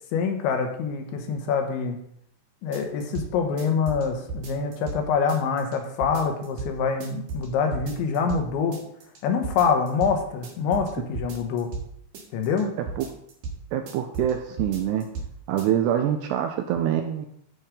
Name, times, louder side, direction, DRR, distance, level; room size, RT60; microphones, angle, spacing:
voice 1, 0.1-2.0 2.6-8.8 9.2-11.7 12.3-12.7, left 5 dB, 80° left, 4 dB, 3.4 m, -25 dB
sound 1, 2.7-3.3 3.6-5.0 5.3-5.8 6.0-6.7 7.0-7.5 7.7-8.4 8.7-9.2 9.4-10.1 10.4-11.9 12.1-12.6 12.9-13.6 13.9-14.3 14.6-15.3 15.6-15.7, right 4 dB, 55° right, 2.8 m, -35 dB
voice 2, 13.7-15.1 15.5-17.3, right 10 dB, 80° right, 5 dB, 2.5 m, -25 dB
13.0 x 4.7 x 5.2 m, 0.72 s
omnidirectional pair, 5.4 m